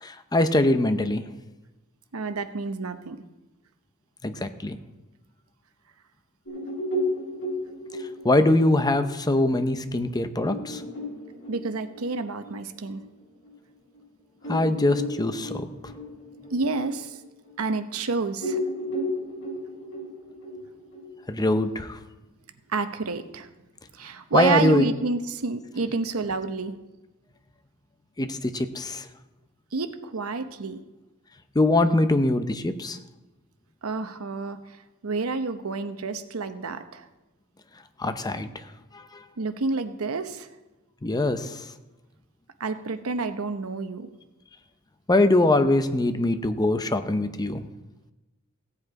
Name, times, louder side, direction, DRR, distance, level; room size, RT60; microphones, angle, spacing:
voice 1, 0.0-1.2 4.2-4.8 8.2-10.8 14.5-15.7 21.3-22.0 24.3-24.8 28.2-29.0 31.5-33.0 38.0-38.5 41.0-41.5 45.1-47.6, left 2 dB, 20° left, 9 dB, 0.7 m, -22 dB
voice 2, 2.1-3.2 11.5-13.0 16.5-17.2 17.6-18.6 22.7-23.5 23.9-26.8 29.7-30.8 33.8-37.1 39.4-40.5 42.6-44.1, right 3 dB, 85° right, 9 dB, 0.8 m, -29 dB
sound 1, 6.4-13.5 13.9-14.0 14.4-18.0 18.4-21.5, left 1 dB, 60° left, 5.3 m, -34 dB
16.0 x 7.8 x 4.8 m, 1.1 s
head